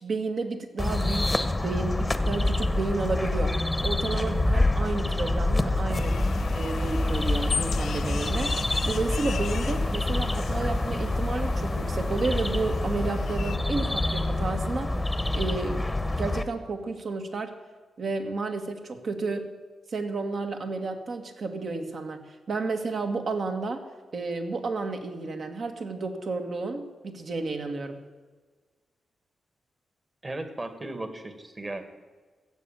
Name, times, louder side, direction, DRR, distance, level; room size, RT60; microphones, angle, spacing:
voice 1, 0.0-3.6 3.8-6.2 6.6-8.6 8.9-14.9 15.3-15.9 16.2-17.5 18.0-19.5 19.9-23.9 24.1-28.0, right 3 dB, 55° right, 5 dB, 1.9 m, -31 dB
sound 1, 0.8-16.4, left 2 dB, 15° left, 1.0 m, -27 dB
sound 2, 5.9-13.6, left 7 dB, 70° left, 0.5 m, -37 dB
voice 2, 30.2-31.9, right 2 dB, 25° right, 8 dB, 1.8 m, -36 dB
15.0 x 7.8 x 8.9 m, 1.4 s
cardioid pair, 90°, 0 cm